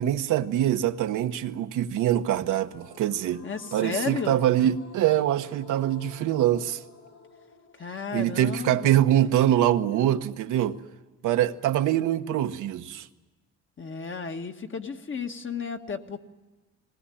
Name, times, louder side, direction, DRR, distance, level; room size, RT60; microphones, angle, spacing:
voice 1, 0.0-3.4 3.7-6.8 8.1-10.8 11.2-13.1, right 12 dB, 85° right, 1.0 m, -24 dB
sound 1, 2.7-9.8, left 3 dB, 70° left, 5.9 m, -51 dB
voice 2, 3.4-4.4 7.8-9.0 13.8-16.2, left 5 dB, 40° left, 1.5 m, -33 dB
20.0 x 18.5 x 10.0 m
cardioid pair, 90°, 30 cm